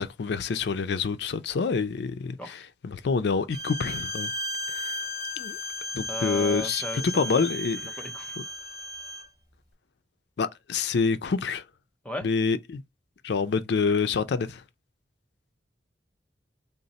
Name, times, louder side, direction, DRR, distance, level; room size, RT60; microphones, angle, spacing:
voice 1, 0.0-4.3 4.8-5.0 5.4-5.6 5.9-8.1 10.4-11.6 12.2-12.8 13.2-14.6, left 5 dB, 65° left, 0.4 m, -27 dB
Bowed string instrument, 3.5-9.3, left 1 dB, 35° left, 2.2 m, -34 dB
voice 2, 6.1-7.3 8.0-8.4 12.0-12.3, left 1 dB, 5° left, 0.5 m, -35 dB
3.8 x 2.0 x 4.0 m
head